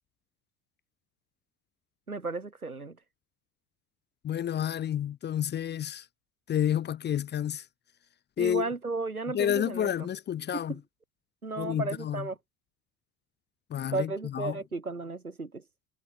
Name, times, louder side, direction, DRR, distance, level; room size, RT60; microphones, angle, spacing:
voice 1, 2.1-3.0 8.4-10.1 10.5-10.8 11.4-12.4 13.9-15.6, right 3 dB, 90° right, 2.6 m, -34 dB
voice 2, 4.2-6.1 6.5-7.6 8.4-8.7 9.3-10.7 11.6-12.3 13.7-14.6, left 10 dB, 25° left, 0.6 m, -30 dB
figure-of-eight pair, 60°, 42 cm